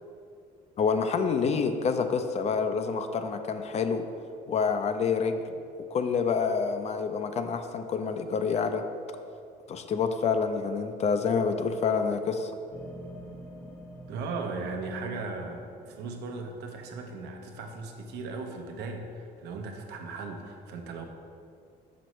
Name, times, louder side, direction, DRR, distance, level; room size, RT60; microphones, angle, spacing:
voice 1, 0.8-4.0 4.5-5.4 5.9-8.8 9.7-12.5, left 5 dB, 40° left, 8 dB, 0.4 m, -27 dB
sound 1, 12.7-18.2, equal, 15° left, 0.8 m, -48 dB
voice 2, 14.1-21.0, right 3 dB, 80° right, 3 dB, 0.7 m, -37 dB
6.1 x 5.3 x 3.1 m, 2.4 s
cardioid pair, 110°, 17 cm